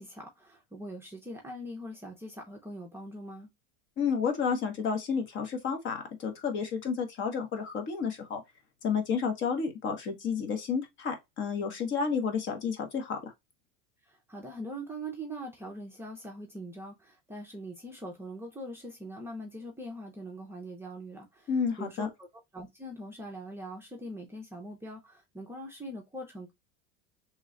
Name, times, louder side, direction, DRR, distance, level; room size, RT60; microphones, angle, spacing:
voice 1, 0.0-3.5 14.0-21.5 21.8-22.3 22.5-26.5, right 1 dB, 10° right, 0.6 m, -42 dB
voice 2, 4.0-8.4 8.8-13.3 21.5-22.1, left 6 dB, 35° left, 1.0 m, -31 dB
3.1 x 2.3 x 3.7 m
supercardioid pair, 135°, 32 cm